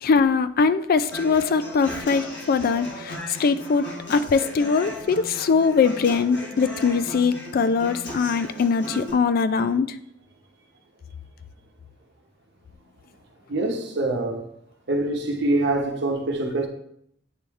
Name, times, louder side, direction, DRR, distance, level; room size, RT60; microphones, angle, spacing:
voice 1, 0.0-9.9, left 5 dB, 50° left, 0.3 m, -22 dB
Human voice / Acoustic guitar, 1.1-9.1, left 1 dB, 70° left, 1.5 m, -37 dB
voice 2, 13.5-14.5 14.9-16.7, right 2 dB, 65° right, 0.9 m, -25 dB
9.0 x 3.2 x 3.5 m
head